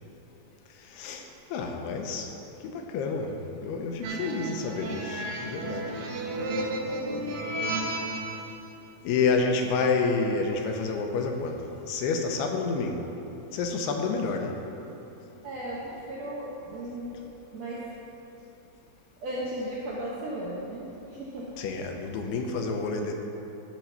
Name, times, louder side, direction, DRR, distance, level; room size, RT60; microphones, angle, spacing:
voice 1, 0.9-1.2 1.5-2.3 2.6-5.9 9.0-13.1 13.5-14.6 21.6-23.1, left 4 dB, 80° left, 3 dB, 2.8 m, -29 dB
sound 1, 4.0-8.5, right 1 dB, 70° right, 2.4 m, -33 dB
voice 2, 6.8-7.3 15.4-17.2 17.5-17.9 19.2-21.5, right 1 dB, 85° right, -5 dB, 1.5 m, -36 dB
10.5 x 6.1 x 5.6 m, 2.9 s
omnidirectional pair, 4.6 m